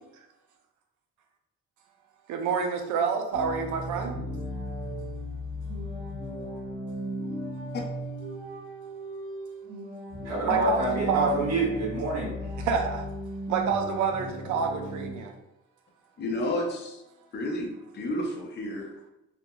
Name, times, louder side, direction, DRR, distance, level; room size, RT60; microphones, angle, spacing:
voice 1, 2.3-4.1 10.4-11.3 12.6-13.0 13.5-15.3, right 6 dB, 75° right, 5 dB, 0.5 m, -27 dB
sound 1, 3.3-15.1, equal, 40° right, 1.2 m, -36 dB
voice 2, 10.2-12.3, right 1 dB, 60° right, -3 dB, 1.2 m, -27 dB
voice 3, 16.2-17.0 17.3-19.1, left 1 dB, 35° left, 0 dB, 0.6 m, -31 dB
2.8 x 2.5 x 2.2 m, 0.90 s
cardioid pair, 90°, 30 cm